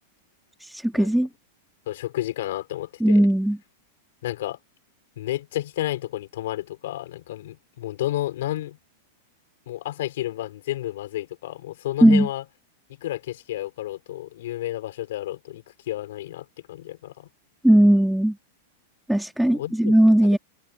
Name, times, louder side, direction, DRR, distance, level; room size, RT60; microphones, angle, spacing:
voice 1, 0.6-1.3 3.0-3.6 12.0-12.3 17.6-18.4 19.1-20.4, right 1 dB, ahead, 3.9 m, -18 dB
voice 2, 1.9-3.2 4.2-4.6 5.2-8.8 9.7-12.4 13.0-17.3 19.5-20.0 20.2-20.4, left 14 dB, 70° left, 3.9 m, -31 dB
hypercardioid pair, 115°, 0 cm